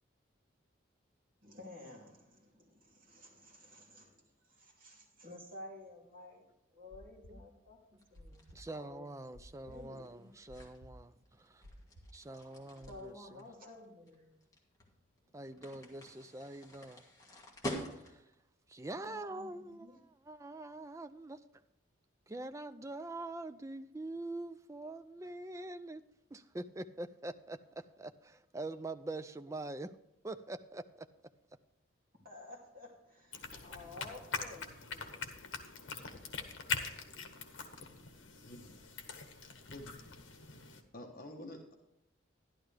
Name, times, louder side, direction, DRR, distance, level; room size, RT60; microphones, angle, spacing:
voice 1, 1.4-6.4 6.7-10.3 12.6-14.4 19.1-20.0 32.2-35.4, left 2 dB, 45° right, 2.7 m, -53 dB
sound 1, 6.8-13.0, left 1 dB, 65° right, 1.1 m, -57 dB
sound 2, 8.0-18.4, equal, 15° left, 1.6 m, -48 dB
voice 2, 8.3-11.6 12.1-13.1 15.3-17.0 18.1-18.2 18.7-21.4 22.3-26.0 26.3-29.9 30.2-31.1, right 2 dB, 15° right, 0.3 m, -44 dB
sound 3, 33.3-40.8, left 5 dB, 70° left, 1.2 m, -43 dB
voice 3, 38.4-38.7 39.7-39.9 40.9-41.7, left 1 dB, 45° left, 1.2 m, -48 dB
11.5 x 11.5 x 3.4 m
head